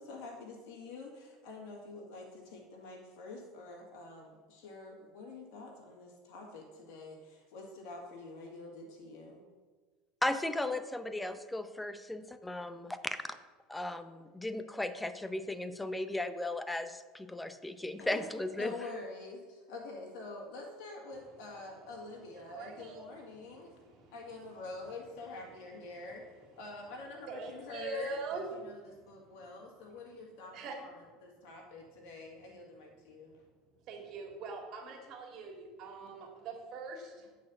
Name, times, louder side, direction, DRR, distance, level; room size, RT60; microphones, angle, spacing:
voice 1, 0.0-9.4 18.0-18.3 18.6-23.7 24.1-26.2 26.5-33.4, left 3 dB, 65° left, -1 dB, 2.0 m, -47 dB
voice 2, 10.2-13.4 13.7-18.7, left 1 dB, 10° left, 11 dB, 0.7 m, -36 dB
voice 3, 22.3-24.2 27.3-28.5 28.9-29.4 30.5-30.7 33.9-37.3, right 3 dB, 55° right, 1 dB, 2.0 m, -43 dB
8.4 x 4.2 x 6.7 m, 1.4 s
hypercardioid pair, 75°, 0 cm